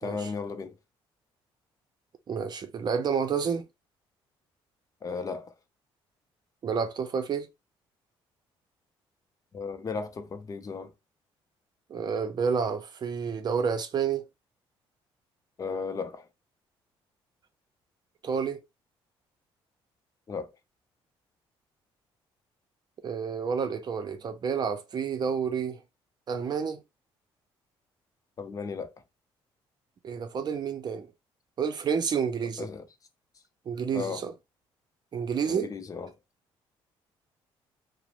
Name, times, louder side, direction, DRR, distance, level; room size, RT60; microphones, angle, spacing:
voice 1, 0.0-0.8 5.0-5.5 9.5-10.9 15.6-16.3 20.3-20.5 28.4-28.9 32.4-32.8 33.9-34.3 35.4-36.1, left 5 dB, 35° left, 0.6 m, -35 dB
voice 2, 2.3-3.6 6.6-7.5 11.9-14.3 18.2-18.6 23.0-25.8 26.3-26.8 30.0-31.1 31.6-32.7 33.7-34.3 35.1-35.7, right 6 dB, 45° right, 0.5 m, -29 dB
2.5 x 2.0 x 3.0 m
cardioid pair, 95°, 10 cm